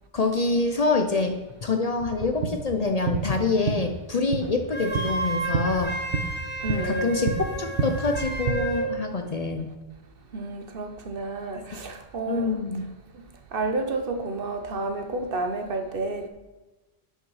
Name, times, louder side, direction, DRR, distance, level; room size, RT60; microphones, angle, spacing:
voice 1, 0.1-1.3 1.6-5.9 6.8-9.7 11.7-11.8 12.3-12.8, left 3 dB, 45° left, 5 dB, 0.7 m, -26 dB
sound 1, 2.0-8.5, right 5 dB, 90° right, 1.2 m, -31 dB
Wind instrument woodwind instrument, 4.7-8.9, right 1 dB, 10° left, 1.1 m, -31 dB
voice 2, 6.6-7.2 10.3-12.6 13.5-16.3, right 2 dB, 60° right, 6 dB, 1.1 m, -30 dB
7.9 x 6.2 x 4.8 m, 1.1 s
omnidirectional pair, 1.1 m